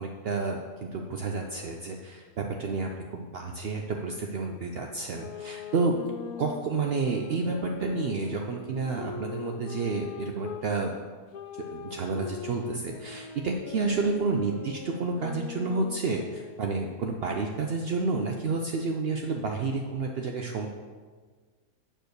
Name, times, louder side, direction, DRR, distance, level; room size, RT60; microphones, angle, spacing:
voice 1, 0.0-6.1 6.4-10.9 11.6-20.7, right 3 dB, 75° right, 2 dB, 0.5 m, -30 dB
sound 1, 5.1-10.7 11.3-16.9, left 6 dB, 75° left, 1.1 m, -41 dB
7.6 x 4.6 x 6.4 m, 1.5 s
omnidirectional pair, 1.7 m